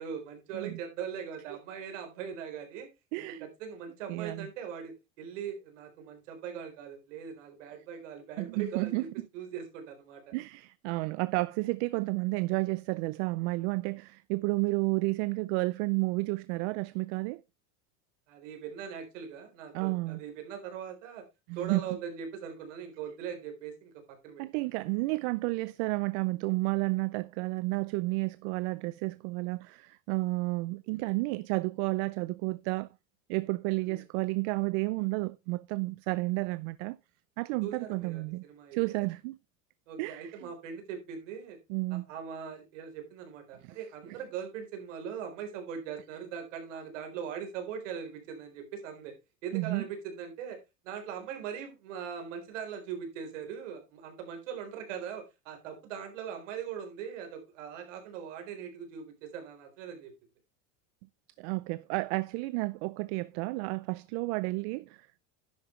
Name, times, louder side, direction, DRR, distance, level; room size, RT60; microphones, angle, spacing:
voice 1, 0.0-2.9 3.3-9.1 9.3-10.3 18.3-21.2 21.6-24.4 33.8-34.0 37.6-39.1 39.9-41.6 41.9-49.1 49.4-50.6 50.8-60.1, right 7 dB, 80° right, 4.0 m, -41 dB
voice 2, 3.1-3.5 4.1-4.5 8.4-9.0 10.3-17.4 19.7-20.2 21.5-21.8 24.4-32.9 33.3-37.0 37.4-38.4 38.7-39.4 40.0-40.3 41.7-42.1 49.5-49.8 61.4-65.2, right 24 dB, 65° right, 0.5 m, -31 dB
10.5 x 8.6 x 3.2 m
supercardioid pair, 125°, 36 cm